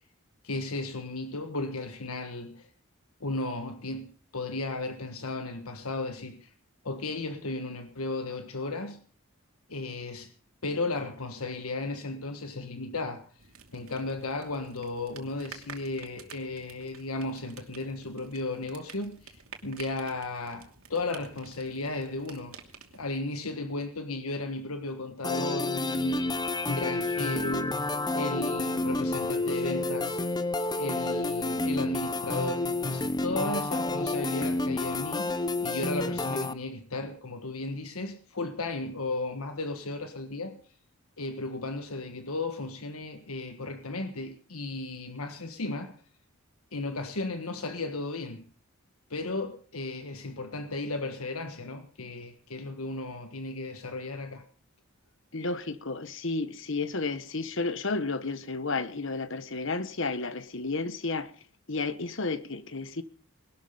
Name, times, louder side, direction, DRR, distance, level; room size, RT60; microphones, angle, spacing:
voice 1, 0.4-2.7 3.2-6.5 6.8-9.0 9.7-10.3 10.6-13.3 13.7-22.5 22.9-27.8 28.1-30.2 30.8-40.6 41.2-45.9 46.7-48.4 49.1-54.4, left 2 dB, 80° left, 1.6 m, -35 dB
sound 1, 13.4-23.2, right 6 dB, 75° right, 2.8 m, -50 dB
sound 2, 25.2-36.5, left 2 dB, 20° left, 0.7 m, -29 dB
voice 2, 55.3-61.3 61.7-63.0, left 3 dB, 60° left, 1.4 m, -32 dB
20.5 x 12.5 x 5.2 m
head